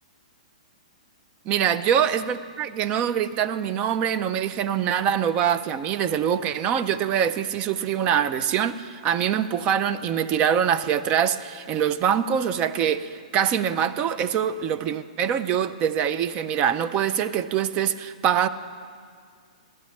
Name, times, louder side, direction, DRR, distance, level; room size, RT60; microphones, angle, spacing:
voice 1, 1.5-18.5, right 9 dB, 30° right, 13 dB, 0.4 m, -24 dB
15.0 x 11.5 x 3.2 m, 2.1 s
hypercardioid pair, 120°, 4 cm